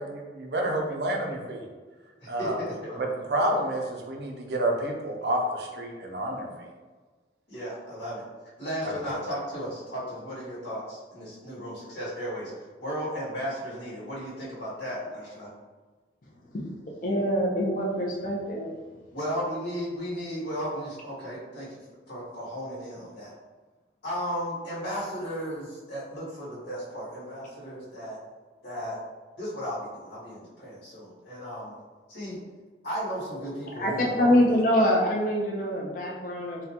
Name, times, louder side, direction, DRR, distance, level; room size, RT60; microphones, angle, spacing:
voice 1, 0.0-1.6 2.3-2.6 3.0-6.5 8.8-9.2, right 1 dB, 65° right, 1 dB, 0.5 m, -29 dB
voice 2, 2.2-3.0 7.5-8.2 8.6-12.5 12.8-15.5 19.1-21.8 22.1-23.3 24.0-28.2 28.6-29.0 29.4-31.7 32.1-32.4 32.8-34.3, equal, 80° left, -9 dB, 1.2 m, -35 dB
voice 3, 17.0-18.7 33.8-33.9 34.2-36.6, equal, 50° left, -2 dB, 0.5 m, -24 dB
3.7 x 2.2 x 2.8 m, 1.3 s
head